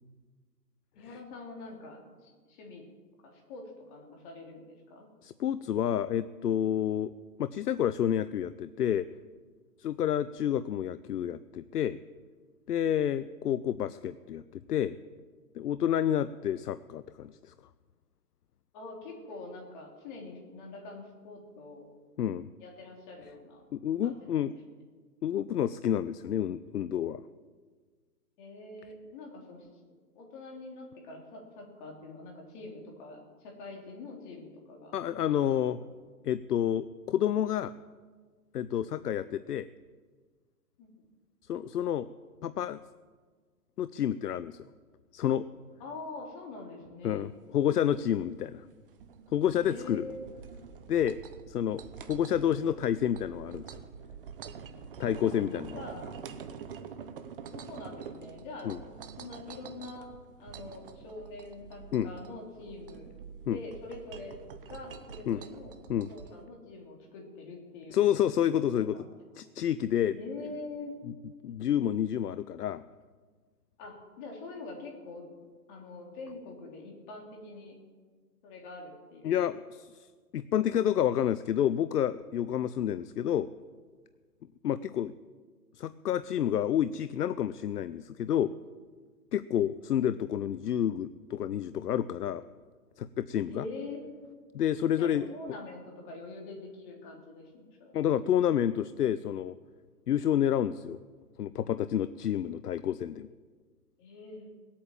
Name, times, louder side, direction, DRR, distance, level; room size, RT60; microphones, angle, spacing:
voice 1, 1.0-2.8 3.2-5.1 18.7-21.9 22.6-23.6 24.0-24.4 28.4-29.7 30.2-34.9 35.2-35.5 40.8-41.0 45.8-47.3 49.6-50.5 55.3-55.4 55.7-56.2 57.5-60.1 60.4-63.1 63.5-65.8 66.1-68.0 68.8-69.1 70.2-71.0 73.8-77.8 78.4-79.4 84.7-84.9 93.5-94.0 95.0-98.1 104.0-104.5, left 3 dB, 30° left, 0 dB, 3.5 m, -45 dB
voice 2, 5.2-7.1 7.4-9.1 9.8-12.0 12.7-15.0 15.5-17.5 22.2-22.5 23.7-24.5 25.2-27.2 34.9-35.8 36.2-37.7 38.5-39.7 41.5-42.1 42.4-42.8 43.8-44.6 45.1-45.5 47.0-48.6 49.3-50.1 50.9-51.2 51.5-53.8 55.0-55.8 58.6-58.8 61.9-62.1 63.5-63.6 65.3-65.4 65.9-66.1 67.9-69.0 69.4-70.2 71.4-72.8 79.2-79.9 80.3-83.5 84.6-85.1 85.8-88.5 89.3-92.4 93.0-93.7 94.5-95.3 97.9-99.6 100.1-101.0 101.4-103.3, left 10 dB, 75° left, 14 dB, 0.7 m, -29 dB
sound 1, 47.2-66.5, right 6 dB, 35° right, 0.9 m, -46 dB
19.0 x 8.6 x 7.4 m, 1.5 s
hypercardioid pair, 145°, 47 cm